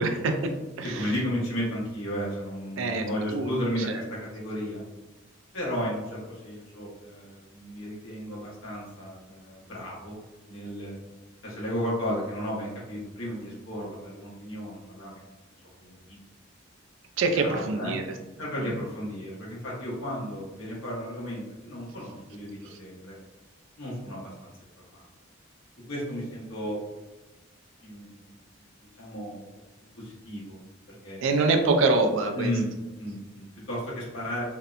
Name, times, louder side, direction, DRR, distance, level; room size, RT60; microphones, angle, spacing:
voice 1, 0.0-1.1 2.8-3.1 3.3-3.5 17.2-18.0 18.6-18.7 22.7-22.8 31.2-32.5, right 3 dB, 70° right, 5 dB, 0.3 m, -25 dB
voice 2, 0.9-4.8 5.5-10.2 10.5-11.0 11.4-15.2 15.8-16.2 17.3-17.9 18.4-23.1 23.8-24.5 24.9-25.0 25.9-26.8 27.8-28.2 29.0-29.6 30.0-30.6 30.9-31.3 32.3-32.7 33.0-34.4, equal, 80° left, -5 dB, 1.0 m, -34 dB
2.7 x 2.1 x 2.4 m, 1.1 s
head